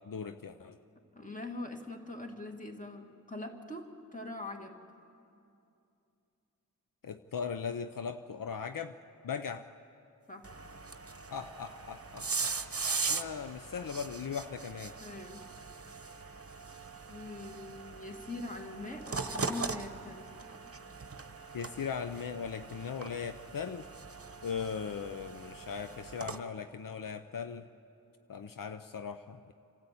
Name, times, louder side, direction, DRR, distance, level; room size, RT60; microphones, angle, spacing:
voice 1, 0.0-0.8 7.0-9.0 9.2-9.7 11.3-12.6 13.1-15.0 21.5-23.9 24.4-27.7 28.3-29.5, left 6 dB, 70° left, 9 dB, 0.6 m, -39 dB
voice 2, 1.1-4.8 10.3-10.5 15.0-15.5 17.1-20.3, left 2 dB, 25° left, 2 dB, 2.1 m, -43 dB
sound 1, 10.4-26.4, right 4 dB, 45° right, 0.9 m, -40 dB
27.5 x 13.0 x 8.5 m, 2.7 s
wide cardioid pair, 50°, 34 cm